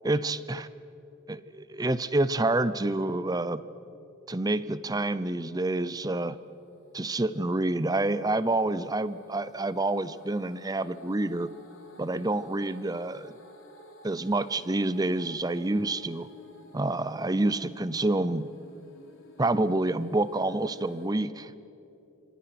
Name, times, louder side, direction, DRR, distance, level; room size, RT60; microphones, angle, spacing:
voice 1, 0.0-0.7 1.3-3.6 4.3-6.4 6.9-11.5 12.0-13.3 14.0-16.3 16.7-18.5 19.4-21.7, right 2 dB, 20° right, 15 dB, 0.6 m, -28 dB
sound 1, 5.9-21.1, equal, 70° left, 3.5 m, -54 dB
28.0 x 26.5 x 6.0 m, 2.8 s
head